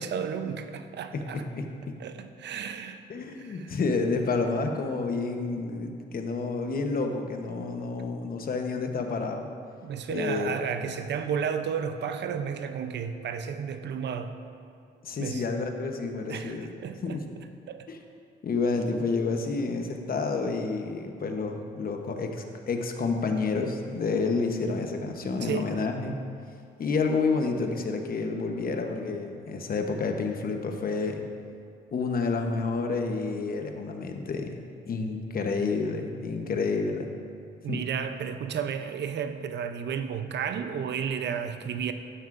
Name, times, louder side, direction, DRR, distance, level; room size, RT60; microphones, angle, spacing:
voice 1, 0.0-1.5 2.0-3.0 3.4-3.8 9.8-14.3 15.2-15.4 16.0-17.9 25.4-25.7 37.6-41.9, right 7 dB, 60° right, 8 dB, 0.7 m, -33 dB
voice 2, 1.1-1.9 3.1-9.5 10.1-10.5 15.0-16.7 17.0-17.2 17.9-18.0 18.4-26.2 26.8-31.2 31.9-34.6 34.9-37.1 37.7-37.8, left 4 dB, 45° left, 4 dB, 1.0 m, -29 dB
12.5 x 9.4 x 2.6 m, 2.4 s
cardioid pair, 90°, 20 cm